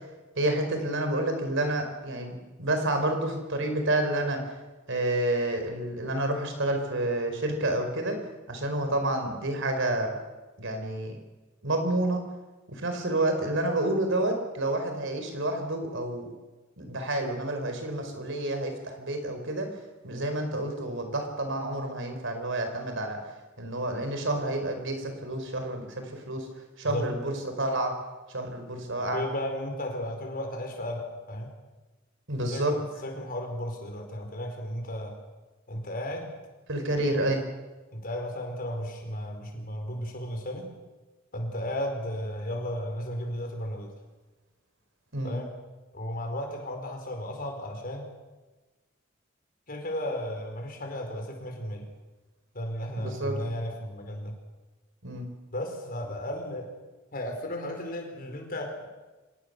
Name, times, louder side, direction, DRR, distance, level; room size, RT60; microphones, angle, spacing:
voice 1, 0.4-4.4 4.9-8.2 8.5-10.2 10.6-11.2 11.6-12.2 12.7-16.3 16.8-19.7 20.0-23.2 23.6-26.5 26.8-28.0 28.3-29.2 32.3-32.7 36.7-37.4 45.1-45.4 53.0-53.4 55.0-55.2, right 1 dB, 65° right, 5 dB, 4.6 m, -29 dB
voice 2, 29.1-31.5 32.5-35.1 35.7-36.3 37.9-40.7 41.3-43.9 45.2-45.5 45.9-48.1 49.7-51.9 52.5-54.4 55.5-56.7 57.1-58.8, left 1 dB, 45° left, 3 dB, 4.8 m, -34 dB
25.0 x 18.5 x 6.8 m, 1.2 s
head